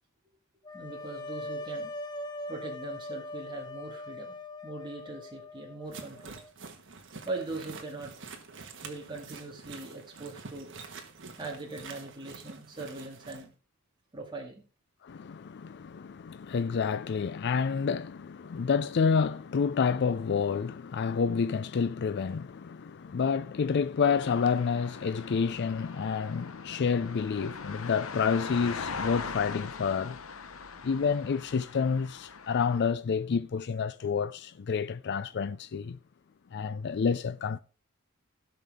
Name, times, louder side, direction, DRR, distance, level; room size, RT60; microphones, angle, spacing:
sound 1, 0.6-6.5, left 1 dB, 20° left, 1.0 m, -41 dB
voice 1, 0.7-1.9 2.5-4.4 4.6-6.4 7.2-8.1 8.8-10.9 11.3-13.5 14.1-14.6, right 3 dB, 20° right, 2.0 m, -41 dB
sound 2, 5.9-13.4, right 4 dB, 60° right, 1.5 m, -47 dB
voice 2, 15.0-30.2 30.8-36.0 36.5-37.6, left 5 dB, 50° left, 0.4 m, -29 dB
sound 3, 24.1-32.9, left 5 dB, 65° left, 0.9 m, -41 dB
16.5 x 5.9 x 3.5 m
head